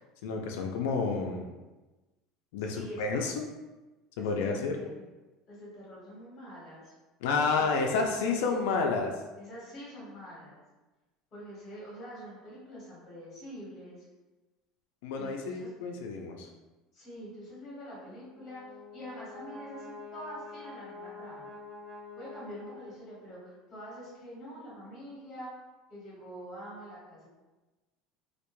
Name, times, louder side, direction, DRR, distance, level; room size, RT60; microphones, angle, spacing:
voice 1, 0.2-1.5 2.5-3.5 4.2-4.8 7.2-9.1 15.0-16.5, left 4 dB, 85° left, 2 dB, 0.3 m, -30 dB
voice 2, 2.6-3.3 4.2-5.0 5.5-6.9 7.5-8.4 9.4-10.6 11.3-14.0 15.2-15.8 16.9-18.6 18.9-21.5 22.2-25.5 25.9-27.3, equal, 30° left, -6 dB, 1.0 m, -45 dB
Brass instrument, 18.2-23.2, left 3 dB, 30° right, 1.1 m, -46 dB
2.2 x 2.1 x 3.0 m, 1.2 s
cardioid pair, 170°, 0 cm